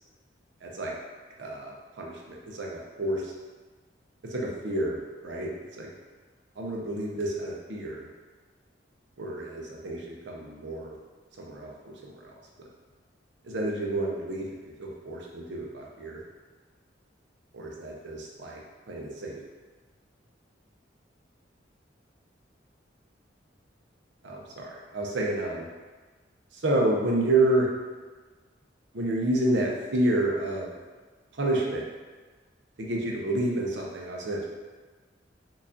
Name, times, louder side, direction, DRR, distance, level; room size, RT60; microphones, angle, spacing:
voice 1, 0.6-1.0 1.4-3.3 4.3-5.5 5.8-5.9 6.6-8.1 9.2-10.9 11.4-12.2 13.4-16.2 17.5-18.6 18.9-19.4 24.2-25.7 26.5-27.7 28.9-30.7 31.3-31.8 32.8-34.5, right 1 dB, 70° right, -1 dB, 0.6 m, -29 dB
4.5 x 2.4 x 2.6 m, 1.3 s
head